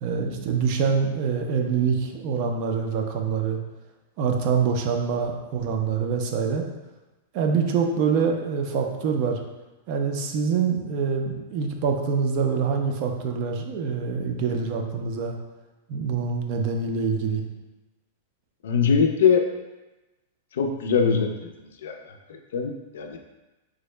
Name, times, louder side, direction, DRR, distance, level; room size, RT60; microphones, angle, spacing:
voice 1, 0.0-3.6 4.2-6.6 7.3-9.4 9.9-15.4 15.9-17.4, right 6 dB, 35° right, 3 dB, 0.3 m, -25 dB
voice 2, 18.6-19.4 20.5-21.3 21.8-22.2 22.5-23.2, left 6 dB, 75° left, 4 dB, 0.4 m, -22 dB
3.6 x 2.0 x 3.1 m, 1.1 s
supercardioid pair, 170°, 0 cm